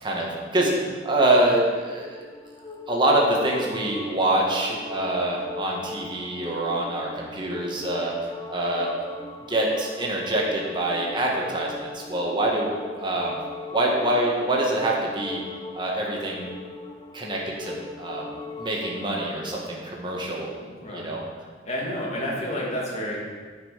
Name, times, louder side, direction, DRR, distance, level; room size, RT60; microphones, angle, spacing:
voice 1, 0.0-2.2 2.9-9.1 9.5-13.4 13.7-15.4 15.7-16.5 17.1-18.3 18.6-20.5 20.9-21.2, right 1 dB, 25° right, -3 dB, 1.7 m, -25 dB
sound 1, 1.7-19.3, left 3 dB, 20° left, 0.5 m, -40 dB
voice 2, 20.6-21.2 21.7-23.2, equal, 35° left, -3 dB, 2.2 m, -30 dB
9.5 x 5.9 x 5.7 m, 1.5 s
head